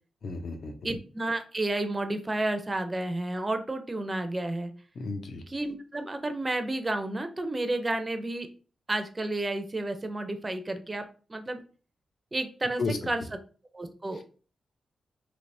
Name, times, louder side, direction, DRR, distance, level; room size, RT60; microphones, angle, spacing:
voice 1, 0.2-0.9 5.0-5.4 12.8-13.0, left 3 dB, 60° left, 6 dB, 0.5 m, -33 dB
voice 2, 0.8-4.7 5.5-8.5 8.9-11.6 12.3-12.8 13.1-13.2 13.7-14.2, right 2 dB, 20° right, 8 dB, 0.4 m, -31 dB
3.3 x 2.9 x 2.5 m, 0.38 s
wide cardioid pair, 135°, 0 cm